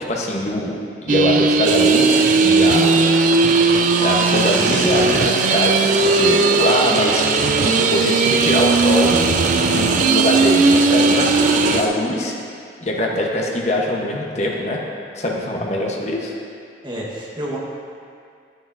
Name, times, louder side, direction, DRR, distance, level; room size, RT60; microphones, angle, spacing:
voice 1, 0.0-3.0 4.0-7.3 7.6-9.1 9.6-12.4 12.8-14.8 15.1-16.3, left 1 dB, 40° left, -1 dB, 1.0 m, -22 dB
sound 1, 1.1-11.8, right 4 dB, 45° right, 0.3 m, -17 dB
sound 2, 1.6-11.9, right 2 dB, 80° right, 1.0 m, -24 dB
voice 2, 16.8-17.6, right 1 dB, 25° right, -4 dB, 1.2 m, -30 dB
9.7 x 9.4 x 2.6 m, 2.3 s
head